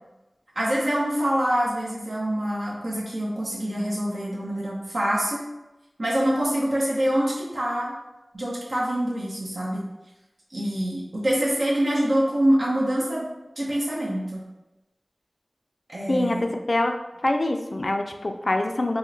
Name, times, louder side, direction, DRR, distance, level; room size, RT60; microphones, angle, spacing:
voice 1, 0.6-5.4 6.0-7.9 8.3-9.8 10.5-13.3 13.6-14.4 15.9-16.5, right 1 dB, 70° right, -5 dB, 0.8 m, -25 dB
voice 2, 16.1-19.0, left 1 dB, 55° left, 5 dB, 0.3 m, -25 dB
2.8 x 2.1 x 3.8 m, 0.98 s
wide cardioid pair, 45°, 0 cm